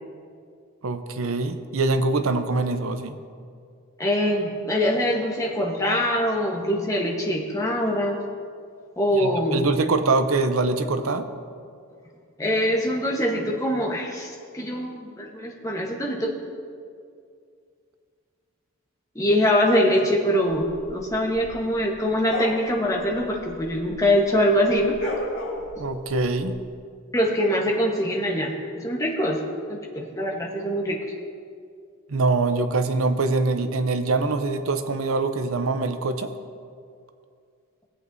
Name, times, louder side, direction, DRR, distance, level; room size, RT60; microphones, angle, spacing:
voice 1, 0.8-3.2 9.1-11.3 25.8-26.6 32.1-36.3, right 3 dB, 70° right, 9 dB, 0.7 m, -24 dB
voice 2, 4.0-8.2 9.0-9.7 12.4-16.3 19.1-25.0 27.1-29.4 29.7-31.0, equal, 15° left, -1 dB, 1.1 m, -23 dB
sound 1, 20.5-24.2 24.5-26.5, left 2 dB, 60° left, 2.4 m, -34 dB
17.5 x 8.1 x 2.7 m, 2.3 s
head